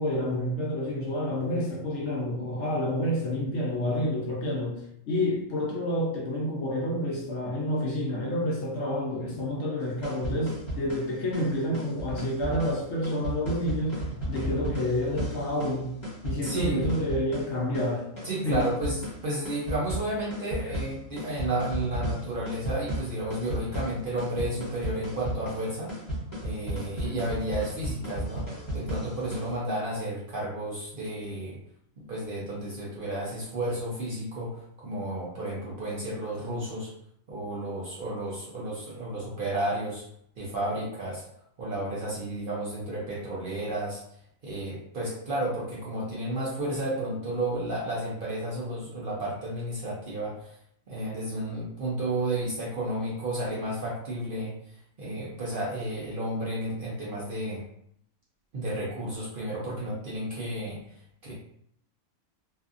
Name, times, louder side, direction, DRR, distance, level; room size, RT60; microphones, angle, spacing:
voice 1, 0.0-4.8 5.1-14.0 14.3-15.9 16.2-18.1 18.4-18.6 20.6-20.7, left 1 dB, 65° left, -2 dB, 0.8 m, -29 dB
sound 1, 9.8-29.5, right 1 dB, 25° left, 0.9 m, -35 dB
voice 2, 16.4-17.0 18.2-25.9 26.4-28.5 28.7-31.6 32.0-36.9 37.3-40.0 40.4-41.2 41.6-44.0 44.4-50.5 50.9-54.5 55.0-57.6 58.5-60.8 61.2-61.3, right 1 dB, 55° right, -5 dB, 0.6 m, -32 dB
2.6 x 2.4 x 2.4 m, 0.70 s
omnidirectional pair, 1.4 m